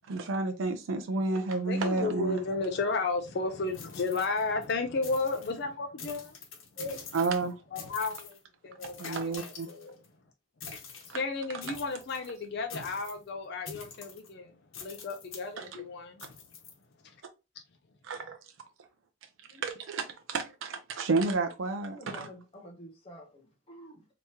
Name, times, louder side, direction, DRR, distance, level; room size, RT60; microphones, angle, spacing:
voice 1, 0.1-2.4 7.1-7.5 9.0-9.7 11.1-11.2 15.6-15.8 18.0-18.4 19.6-22.3, right 3 dB, 70° right, 0.5 m, -31 dB
voice 2, 1.7-6.4 7.7-8.4 8.6-10.0 11.1-16.2, left 3 dB, 55° left, 0.5 m, -33 dB
sound 1, 3.7-4.7 5.0-5.6 6.0-7.5 7.8-8.4 8.8-10.1 10.6-11.2 11.6-12.3 12.7-13.2 13.7-14.3 14.7-15.5 16.2-16.7, left 5 dB, 80° left, 1.0 m, -46 dB
voice 3, 6.8-7.1 7.4-7.5 19.4-19.6 21.9-24.1, left 1 dB, 30° left, 0.8 m, -45 dB
3.5 x 2.9 x 2.8 m
head